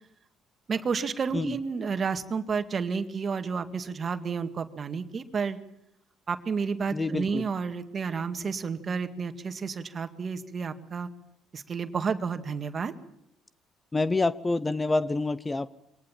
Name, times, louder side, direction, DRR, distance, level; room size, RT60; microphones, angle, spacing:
voice 1, 0.7-5.6 6.3-11.1 11.5-12.9, right 5 dB, 40° right, 8 dB, 2.0 m, -31 dB
voice 2, 6.9-7.4 13.9-15.7, left 3 dB, 20° left, 16 dB, 0.8 m, -27 dB
24.0 x 18.5 x 7.4 m, 0.78 s
supercardioid pair, 75°, 0 cm